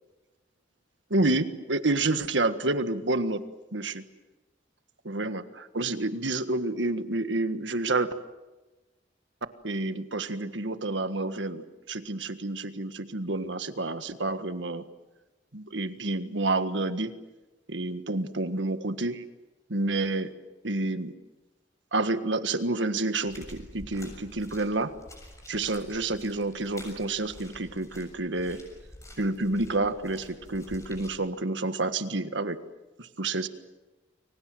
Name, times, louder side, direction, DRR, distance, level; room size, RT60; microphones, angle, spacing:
voice 1, 1.1-3.4 3.7-4.0 5.0-8.1 9.6-14.8 15.5-17.1 17.7-19.2 19.7-20.3 20.6-21.1 21.9-24.9 25.5-28.6 29.2-32.6 33.0-33.5, right 2 dB, 80° right, 10 dB, 1.6 m, -29 dB
sound 1, 23.2-31.1, left 1 dB, 15° left, 7.2 m, -48 dB
30.0 x 23.5 x 7.8 m, 1.1 s
head